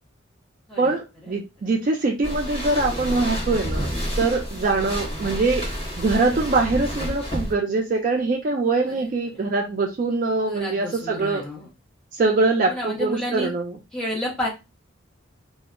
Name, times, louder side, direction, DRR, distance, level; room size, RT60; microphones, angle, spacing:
voice 1, 0.8-3.9 4.2-5.7 6.0-11.4 12.1-13.8, right 3 dB, 40° right, 2 dB, 0.3 m, -23 dB
sound 1, 2.2-7.5, equal, 30° left, 1.0 m, -29 dB
voice 2, 4.5-5.1 8.9-9.1 10.4-11.7 12.7-13.5 13.9-14.5, equal, 5° left, -4 dB, 0.7 m, -31 dB
2.1 x 2.0 x 3.5 m, 0.27 s
head